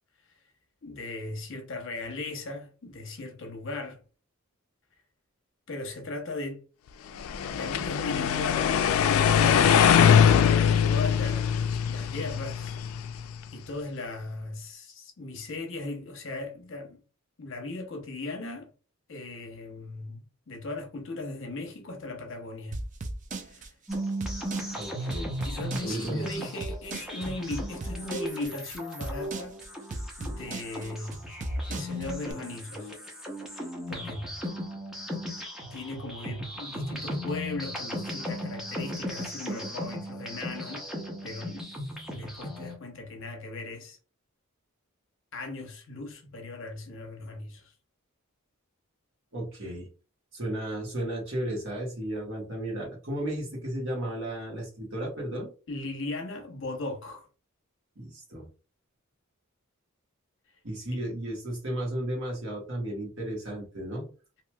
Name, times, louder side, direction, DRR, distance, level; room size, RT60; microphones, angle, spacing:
voice 1, 0.8-4.0 5.7-6.6 7.4-8.8 9.1-9.8 10.7-12.8 13.5-17.0 17.4-18.7 19.1-22.8 23.4-23.7 25.4-29.6 30.2-31.3 31.7-33.0 33.5-34.3 35.7-41.7 42.1-44.0 45.3-47.7 55.7-57.3 60.9-61.0, left 2 dB, 60° left, 0.8 m, -38 dB
sound 1, 7.2-13.3, left 8 dB, 80° left, 0.3 m, -22 dB
sound 2, 22.7-32.3, right 2 dB, 35° right, 0.4 m, -37 dB
sound 3, 23.9-42.8, equal, ahead, 0.7 m, -36 dB
voice 2, 24.8-25.4 25.8-26.3 49.3-49.9 50.3-55.5 57.9-58.5 60.6-64.1, right 1 dB, 65° right, 1.4 m, -34 dB
3.0 x 2.7 x 2.2 m
head